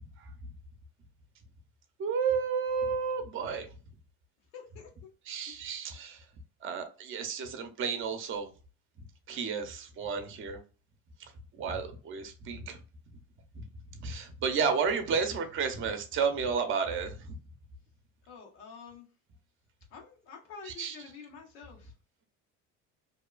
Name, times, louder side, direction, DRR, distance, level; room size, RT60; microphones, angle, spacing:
voice 1, 2.0-3.7 5.3-6.2 6.6-8.5 9.3-10.6 11.2-11.3 11.6-12.8 13.6-13.7 14.0-17.3 20.8-20.9, right 6 dB, 40° right, 0.7 m, -32 dB
voice 2, 4.5-5.1 5.5-5.7 18.3-19.1 19.9-21.9, left 6 dB, 90° left, 1.1 m, -48 dB
2.7 x 2.3 x 2.2 m
cardioid pair, 115°, 31 cm